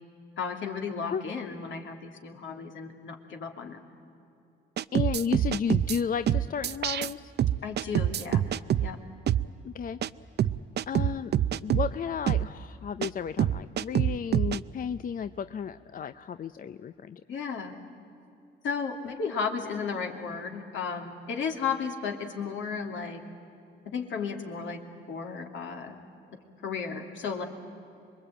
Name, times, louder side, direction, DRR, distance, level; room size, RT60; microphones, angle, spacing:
voice 1, 0.4-3.8 7.6-8.4 8.8-9.0 17.3-17.7 18.6-23.2 23.9-24.8 25.1-26.0 26.6-27.5, left 5 dB, 70° left, 3 dB, 2.9 m, -34 dB
sound 1, 4.8-6.0 6.3-7.1 7.4-8.9 9.3-9.5 10.0-10.1 10.4-11.9 12.3-12.5 13.0-13.1 13.4-14.6, right 11 dB, 55° right, 0.6 m, -25 dB
voice 2, 4.9-7.3 9.6-10.0 10.9-17.2, left 7 dB, 45° left, 12 dB, 0.6 m, -33 dB
26.5 x 22.0 x 9.0 m, 2.7 s
cardioid pair, 90°, 20 cm